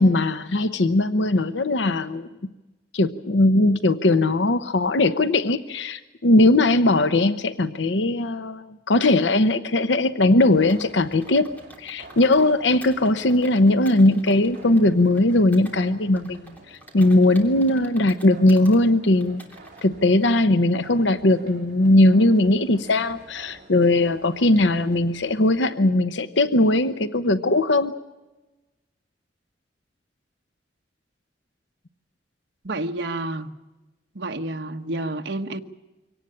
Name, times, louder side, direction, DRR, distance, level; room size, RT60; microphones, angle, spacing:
voice 1, 0.0-2.3 2.9-11.5 11.8-19.4 19.8-27.9, left 2 dB, 85° left, 12 dB, 0.9 m, -19 dB
sound 1, 10.4-25.7, right 2 dB, 45° right, 5.1 m, -49 dB
Computer keyboard, 10.7-12.5 12.8-15.8 16.2-18.8 19.2-19.9, equal, 10° left, 3.2 m, -48 dB
voice 2, 32.6-33.5 34.1-35.6, right 2 dB, 70° right, 5 dB, 1.2 m, -29 dB
24.0 x 18.0 x 8.7 m, 1.1 s
head